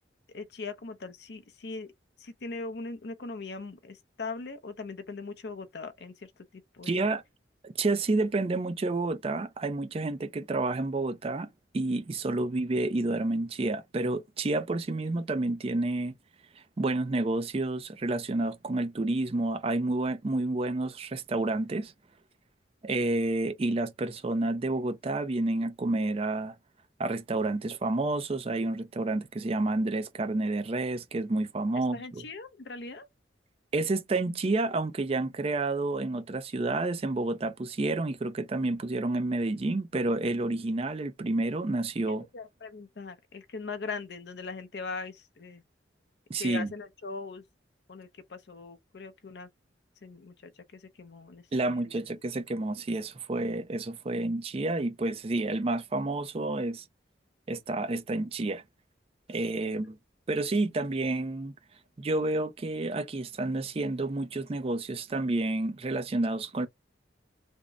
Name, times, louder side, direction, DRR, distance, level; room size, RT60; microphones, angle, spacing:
voice 1, 0.3-1.9 2.2-7.0 31.9-33.1 42.1-45.6 46.4-47.4 47.9-49.5 50.0-51.9 59.6-59.8, left 4 dB, 60° left, 0.5 m, -40 dB
voice 2, 6.8-7.2 7.6-11.5 11.7-16.1 16.8-21.9 22.8-26.5 27.0-32.2 33.7-42.2 46.3-46.7 51.5-56.8 57.5-58.6 59.3-60.0 60.3-61.5 62.0-66.7, right 2 dB, 30° right, 0.4 m, -29 dB
3.5 x 2.0 x 3.7 m
head